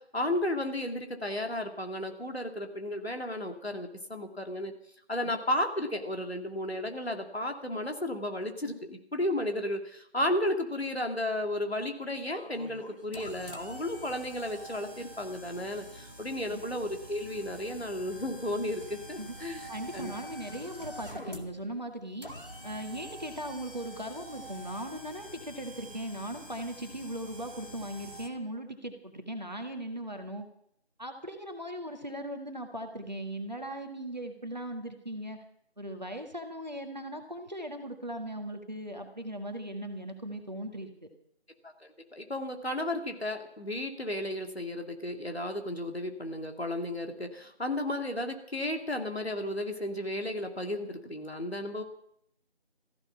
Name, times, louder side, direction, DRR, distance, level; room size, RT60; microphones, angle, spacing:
voice 1, 0.0-4.7 5.1-20.1 41.6-51.8, left 1 dB, 70° left, 4 dB, 2.6 m, -33 dB
sound 1, 12.3-28.3, right 1 dB, 55° left, 1.9 m, -46 dB
voice 2, 19.7-22.3 22.6-30.5 31.0-35.4 35.8-40.9, right 1 dB, 40° right, 5 dB, 1.7 m, -38 dB
16.0 x 15.0 x 5.8 m, 0.71 s
figure-of-eight pair, 175°, 33 cm